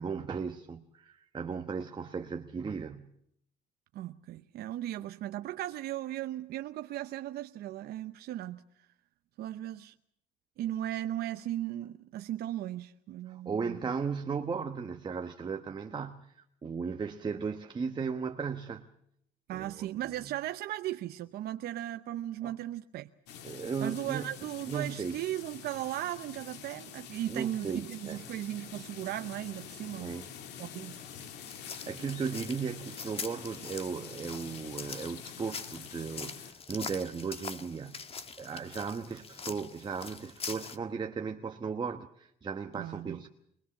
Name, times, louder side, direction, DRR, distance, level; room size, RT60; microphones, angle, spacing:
voice 1, 0.0-3.1 13.3-18.9 19.5-19.8 22.4-22.5 23.4-24.2 24.7-25.2 27.3-28.2 29.9-30.3 31.6-38.1 38.4-43.3, right 5 dB, 25° right, 1.1 m, -36 dB
voice 2, 3.9-8.6 9.4-9.9 10.6-13.8 19.5-23.1 23.8-30.2 30.6-31.0 42.8-43.2, right 13 dB, 70° right, 0.8 m, -37 dB
sound 1, 23.3-36.5, left 8 dB, 85° left, 2.0 m, -47 dB
sound 2, 31.4-40.8, left 5 dB, 35° left, 1.5 m, -44 dB
23.5 x 20.0 x 7.2 m
cardioid pair, 110°, 17 cm